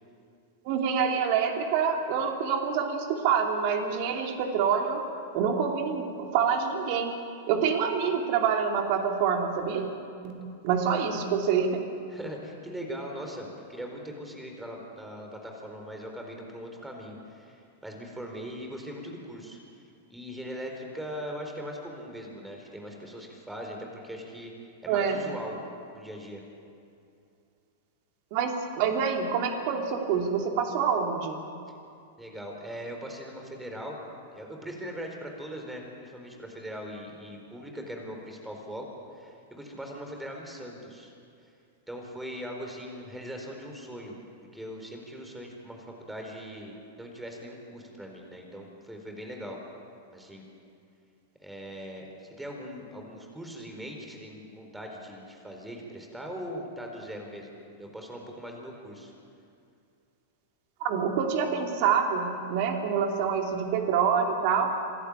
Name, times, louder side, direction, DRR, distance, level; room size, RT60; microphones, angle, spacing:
voice 1, 0.6-5.0 5.3-7.1 7.5-10.0 10.2-11.8 24.9-25.2 28.3-31.4 60.8-64.8, right 6 dB, 50° right, 3 dB, 2.9 m, -26 dB
voice 2, 12.1-19.6 20.1-24.5 24.8-25.6 25.9-26.4 32.2-34.0 34.3-38.8 39.1-41.1 41.4-41.5 41.9-44.1 44.5-49.6 50.1-50.4 51.4-59.1, equal, 5° right, 1 dB, 4.4 m, -40 dB
27.0 x 11.5 x 8.7 m, 2.5 s
figure-of-eight pair, 95°, 0 cm